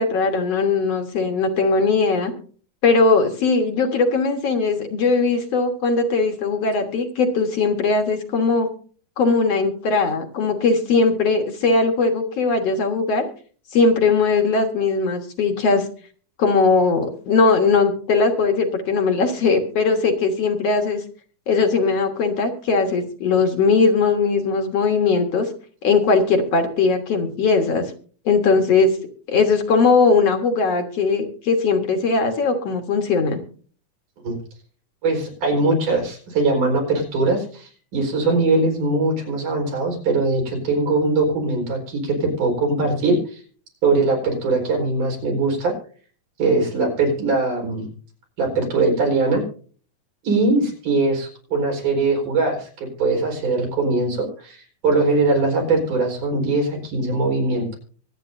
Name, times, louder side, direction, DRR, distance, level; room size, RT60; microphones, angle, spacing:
voice 1, 0.0-2.3 2.8-8.7 9.2-13.3 13.7-15.8 16.4-21.0 21.5-25.5 25.8-27.9 28.3-29.0 29.3-33.4, left 4 dB, 55° left, 4 dB, 2.4 m, -19 dB
voice 2, 35.0-43.4 43.8-45.7 46.4-47.9 48.4-49.4 50.2-57.8, right 3 dB, 75° right, 0 dB, 6.3 m, -21 dB
24.0 x 9.1 x 2.7 m, 0.42 s
omnidirectional pair, 3.6 m